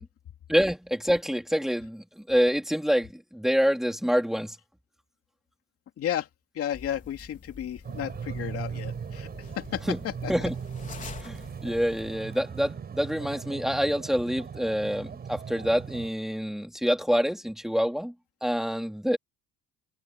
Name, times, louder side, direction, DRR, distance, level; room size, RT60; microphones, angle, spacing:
voice 1, 0.5-4.6 9.8-10.0 10.3-10.5 11.2-18.1 18.4-19.2, equal, ahead, 3.6 m, -26 dB
voice 2, 6.0-6.3 6.5-9.3 9.6-9.8 10.2-10.3, left 10 dB, 50° left, 2.6 m, -32 dB
sound 1, 6.7-12.4, left 5 dB, 25° left, 4.1 m, -46 dB
sound 2, 7.8-16.1, right 7 dB, 30° right, 5.6 m, -38 dB
cardioid pair, 140°, 31 cm